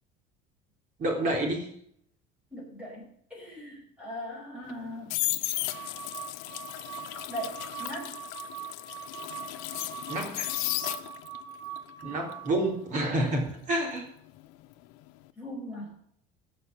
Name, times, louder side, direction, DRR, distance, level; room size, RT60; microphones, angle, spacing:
voice 1, 1.0-1.7 10.1-10.5 12.0-14.0, right 1 dB, 35° right, 2 dB, 3.6 m, -29 dB
voice 2, 2.5-5.1 7.3-8.1 15.4-15.9, equal, 5° right, -4 dB, 5.5 m, -39 dB
sound 1, 4.7-11.4 11.8-14.7 14.9-15.3, left 18 dB, 80° left, 0.9 m, -35 dB
sound 2, 5.7-12.7, right 9 dB, 55° right, 1.7 m, -42 dB
15.0 x 5.7 x 8.4 m, 0.67 s
cardioid pair, 170°, 21 cm